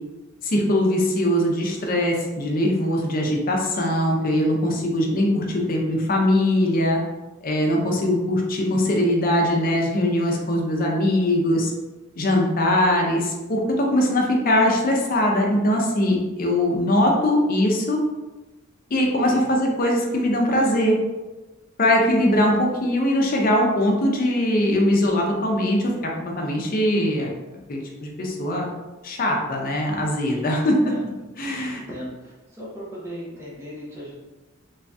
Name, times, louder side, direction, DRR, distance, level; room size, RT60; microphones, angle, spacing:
voice 1, 0.4-7.0 7.4-11.7 12.2-18.0 18.9-20.9 21.8-26.1 26.4-27.3 27.7-28.7 29.0-30.9 31.4-31.8, left 1 dB, 45° left, 0 dB, 0.5 m, -21 dB
voice 2, 19.0-19.5 30.3-31.1 31.6-34.1, equal, 15° right, -6 dB, 0.5 m, -38 dB
3.1 x 2.6 x 2.2 m, 1.1 s
head